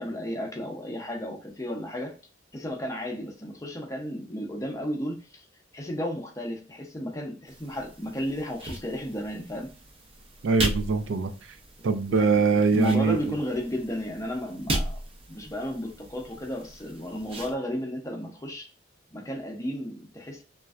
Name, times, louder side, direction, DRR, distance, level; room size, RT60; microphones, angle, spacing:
voice 1, 0.0-2.2 2.5-5.5 5.7-9.7 12.1-12.4 12.7-18.7 19.1-20.4, left 1 dB, 15° left, 0.6 m, -33 dB
sound 1, 7.5-17.5, right 1 dB, 30° right, 0.6 m, -37 dB
voice 2, 10.4-11.6 11.8-13.4, right 4 dB, 75° right, 0.4 m, -23 dB
3.1 x 2.4 x 2.3 m
head